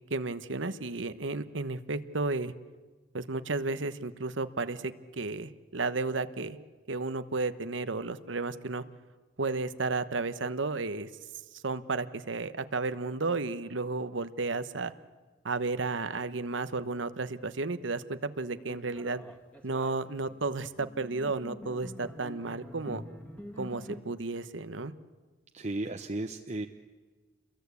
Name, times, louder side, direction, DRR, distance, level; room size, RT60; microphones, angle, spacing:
voice 1, 0.1-2.5 3.1-6.6 6.9-8.8 9.4-11.1 11.6-14.9 15.4-19.2 19.6-23.0 23.6-24.9, right 3 dB, 85° right, 12 dB, 1.1 m, -33 dB
sound 1, 18.6-24.0, equal, 5° left, 2.3 m, -46 dB
voice 2, 25.5-26.7, right 2 dB, 40° right, 5 dB, 0.9 m, -34 dB
29.5 x 22.5 x 8.4 m, 1.3 s
head